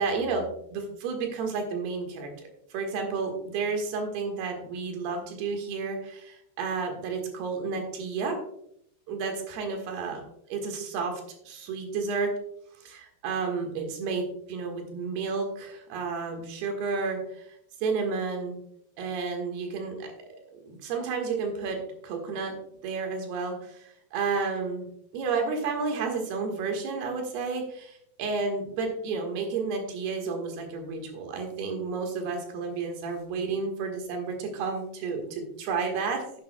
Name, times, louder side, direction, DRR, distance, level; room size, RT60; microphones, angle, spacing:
voice 1, 0.0-2.3 2.7-8.4 9.1-10.2 10.5-12.3 12.8-17.5 17.8-18.6 19.0-20.1 20.6-22.6 22.8-24.9 25.1-36.4, right 4 dB, 90° right, 3 dB, 3.6 m, -31 dB
10.5 x 10.5 x 2.2 m, 0.72 s
omnidirectional pair, 4.4 m